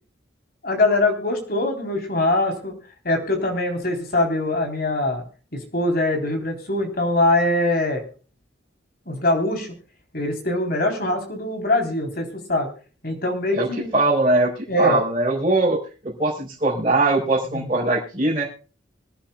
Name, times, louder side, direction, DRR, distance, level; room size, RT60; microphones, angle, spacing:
voice 1, 0.6-2.8 3.0-5.2 5.5-8.0 9.1-9.7 10.1-12.7 13.0-13.9 14.7-15.0 17.5-17.7, left 2 dB, 50° left, 3 dB, 3.8 m, -22 dB
voice 2, 13.9-14.5 14.8-15.8 16.0-18.5, right 2 dB, 30° right, -7 dB, 4.5 m, -21 dB
25.5 x 10.5 x 2.3 m, 0.38 s
head